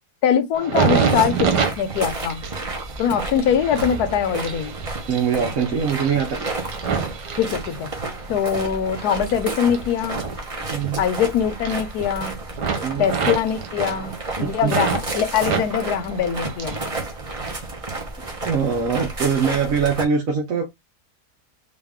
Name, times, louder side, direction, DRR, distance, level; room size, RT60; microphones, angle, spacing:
voice 1, 0.2-1.5 1.8-2.4 3.0-4.7 7.4-7.9 8.3-10.2 11.0-12.4 13.0-16.8, left 8 dB, 75° left, 1.2 m, -22 dB
sound 1, 0.5-8.2 8.7-11.3 11.5-12.2 12.5-15.0 15.4-16.9 17.2-17.9 18.5-18.7, right 6 dB, 85° right, 1.5 m, -27 dB
sound 2, 0.7-20.0, right 2 dB, 25° right, 0.8 m, -32 dB
voice 2, 5.1-6.5 10.7-11.0 12.8-13.1 14.6-14.7 18.4-20.7, right 6 dB, 60° right, 1.3 m, -22 dB
3.9 x 2.6 x 3.5 m
omnidirectional pair, 1.7 m